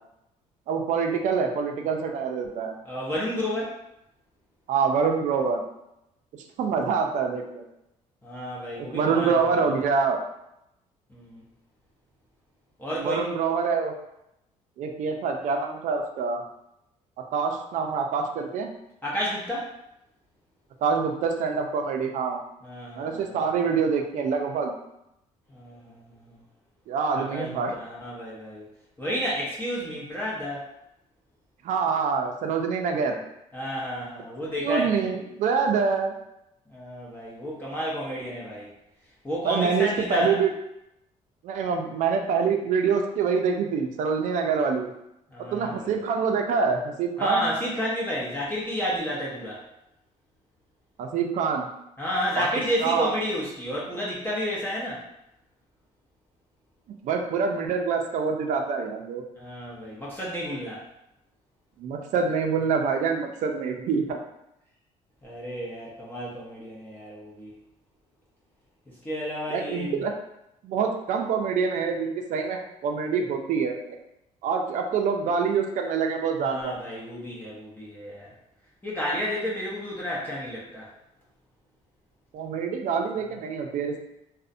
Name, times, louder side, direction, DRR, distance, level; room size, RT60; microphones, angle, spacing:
voice 1, 0.7-2.8 4.7-5.6 6.6-7.6 8.8-10.2 13.0-14.0 14.8-16.4 17.3-18.7 20.8-22.4 23.0-24.8 26.9-27.7 31.6-33.2 34.6-36.1 39.4-40.5 41.4-44.9 45.4-47.4 51.0-51.7 52.4-52.5 52.8-53.1 57.0-59.2 61.8-64.2 69.5-70.1 70.6-73.8 74.4-76.7 82.3-84.0, right 5 dB, 60° right, 3 dB, 0.4 m, -26 dB
voice 2, 2.8-3.8 8.2-9.6 11.1-11.4 12.8-13.3 19.0-19.7 22.6-23.4 25.5-26.4 27.1-28.7 29.0-30.7 33.5-35.1 36.7-38.7 39.2-40.4 45.3-46.0 47.2-49.6 52.0-55.0 59.4-60.8 65.2-67.6 69.0-70.0 76.4-78.3 78.8-80.9, equal, 15° left, -7 dB, 0.6 m, -31 dB
2.5 x 2.0 x 2.5 m, 0.84 s
cardioid pair, 105°, 14 cm